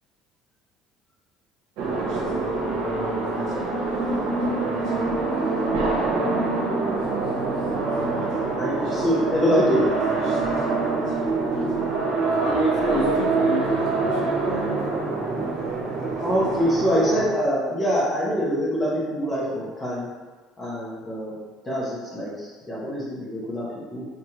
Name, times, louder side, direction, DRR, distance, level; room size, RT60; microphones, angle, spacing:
sound 1, 1.8-17.2, right 3 dB, 75° right, 0.9 m, -25 dB
voice 1, 8.5-9.9 16.2-20.1 20.6-21.3 21.6-24.1, equal, 15° left, -6 dB, 0.9 m, -24 dB
voice 2, 12.4-14.8, equal, 55° left, -3 dB, 0.8 m, -28 dB
5.1 x 3.0 x 2.9 m, 1.3 s
cardioid pair, 175°, 0 cm